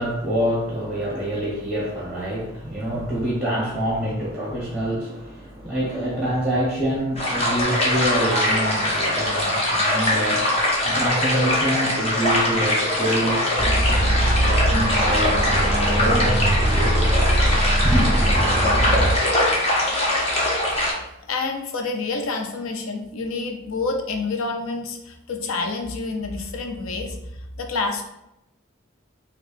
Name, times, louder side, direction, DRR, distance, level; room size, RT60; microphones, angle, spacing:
voice 1, 0.0-10.6 10.8-13.5 13.8-17.1 17.8-18.2, right 1 dB, 5° right, -6 dB, 0.9 m, -26 dB
voice 2, 2.9-3.2 4.8-4.9 21.3-28.0, left 3 dB, 75° left, 4 dB, 0.5 m, -28 dB
sound 1, 7.2-20.9, left 1 dB, 30° left, 0.7 m, -22 dB
sound 2, 13.6-19.2, right 1 dB, 25° right, 0.4 m, -21 dB
4.5 x 2.4 x 2.5 m, 0.85 s
head